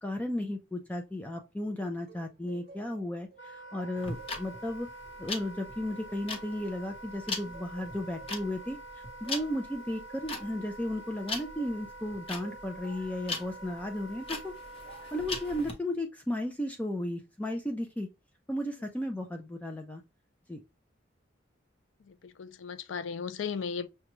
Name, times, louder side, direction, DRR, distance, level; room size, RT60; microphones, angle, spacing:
voice 1, 0.0-4.9 5.2-14.5 15.1-18.1 18.5-20.0 20.5-20.6, left 1 dB, 10° left, 0.4 m, -34 dB
sound 1, 2.1-7.1 7.5-11.9 12.4-13.9 14.8-15.3, right 6 dB, 55° right, 0.6 m, -55 dB
Wind instrument woodwind instrument, 3.4-15.7, right 1 dB, 70° left, 0.8 m, -47 dB
sound 2, 4.0-15.7, left 3 dB, 30° left, 0.9 m, -39 dB
voice 2, 22.0-23.9, left 6 dB, 85° left, 0.4 m, -36 dB
6.0 x 2.2 x 3.0 m
head